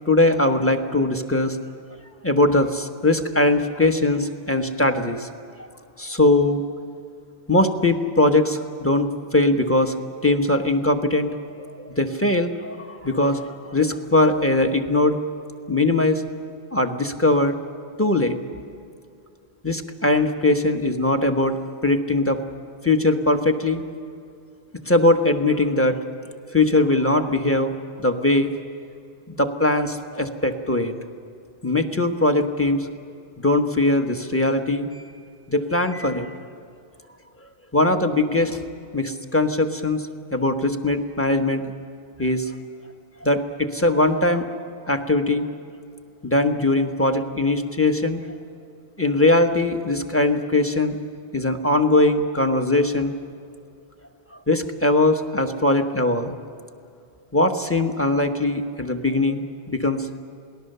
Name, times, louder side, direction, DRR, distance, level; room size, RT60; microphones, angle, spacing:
voice 1, 0.0-1.6 2.2-5.3 6.0-6.6 7.5-9.9 10.2-11.3 11.7-15.2 15.7-16.2 16.7-17.6 18.0-18.4 19.6-22.4 22.8-23.8 24.9-26.0 26.5-27.7 28.0-28.5 29.3-31.0 31.6-32.9 33.4-35.0 35.5-36.4 37.7-38.6 38.9-41.6 42.2-42.5 43.2-44.5 44.9-45.4 46.2-48.2 49.0-51.0 51.3-53.1 54.5-56.4 57.3-60.1, left 2 dB, 10° left, 5 dB, 1.1 m, -21 dB
28.0 x 19.0 x 6.8 m, 2.3 s
omnidirectional pair, 1.2 m